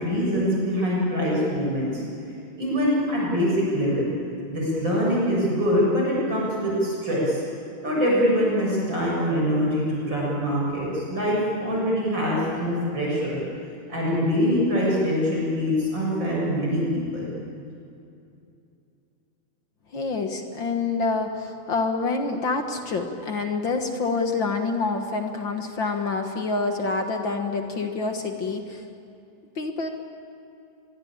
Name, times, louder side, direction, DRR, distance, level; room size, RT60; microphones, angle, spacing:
voice 1, 0.0-2.0 2.6-4.1 4.5-7.4 7.8-13.4 13.9-17.3, equal, 35° right, -5 dB, 8.0 m, -24 dB
voice 2, 19.9-28.8 29.6-29.9, left 3 dB, 45° left, 5 dB, 1.8 m, -27 dB
25.0 x 22.5 x 9.0 m, 2.6 s
omnidirectional pair, 3.6 m